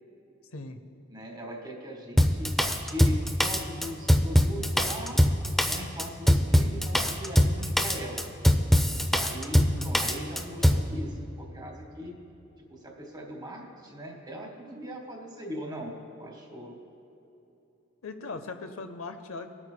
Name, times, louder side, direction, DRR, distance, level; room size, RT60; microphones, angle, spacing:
voice 1, 1.1-2.5 2.8-5.2 5.6-8.2 9.2-12.1 12.7-16.7, equal, 20° right, 1 dB, 1.5 m, -39 dB
Drum kit, 2.2-10.9, equal, ahead, 0.4 m, -22 dB
voice 2, 9.5-10.0 18.0-19.5, left 3 dB, 85° left, 8 dB, 0.7 m, -39 dB
22.5 x 8.7 x 2.2 m, 3.0 s
head